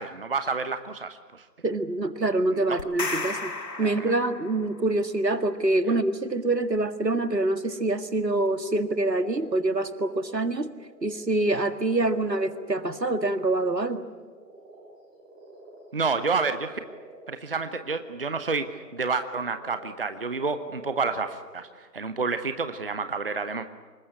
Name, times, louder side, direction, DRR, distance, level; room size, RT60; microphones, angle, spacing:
voice 1, 0.0-1.5 2.5-2.8 3.8-4.1 5.9-6.0 15.9-16.8 17.3-23.7, right 4 dB, 35° right, 10 dB, 0.9 m, -29 dB
voice 2, 1.6-3.5 3.8-10.7 11.0-14.1, right 2 dB, 80° right, 9 dB, 2.0 m, -25 dB
sound 1, 2.8-4.8, left 3 dB, 75° left, 2.2 m, -33 dB
sound 2, 7.7-8.4 8.7-21.7, right 2 dB, 5° right, 1.2 m, -49 dB
25.5 x 21.0 x 9.7 m, 1.4 s
figure-of-eight pair, 155°, 50 cm